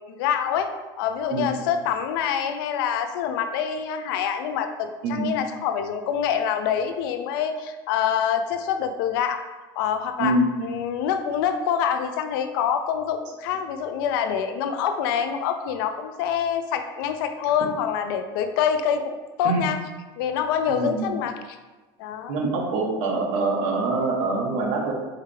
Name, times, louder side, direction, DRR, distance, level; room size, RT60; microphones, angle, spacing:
voice 1, 0.1-0.7 1.0-9.4 9.8-10.4 10.6-19.8 20.2-21.4 22.0-22.4, left 8 dB, 80° left, 7 dB, 0.5 m, -26 dB
voice 2, 10.2-10.6 19.4-19.6 20.7-21.2 22.3-24.9, right 2 dB, 60° right, 0 dB, 1.2 m, -24 dB
4.6 x 3.3 x 3.4 m, 1.2 s
cardioid pair, 150°, 12 cm